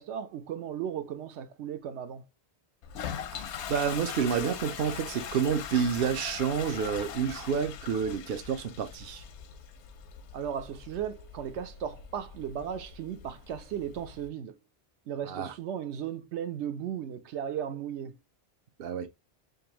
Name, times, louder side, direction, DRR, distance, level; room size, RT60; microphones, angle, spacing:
voice 1, 0.0-2.2 10.3-14.6 15.1-18.2, right 9 dB, 90° right, 1.0 m, -36 dB
Toilet flush, 2.8-14.3, left 8 dB, 85° left, 0.9 m, -41 dB
voice 2, 3.7-9.2 15.3-15.5 18.8-19.1, right 7 dB, 65° right, 0.7 m, -29 dB
5.1 x 2.3 x 2.9 m
omnidirectional pair, 1.1 m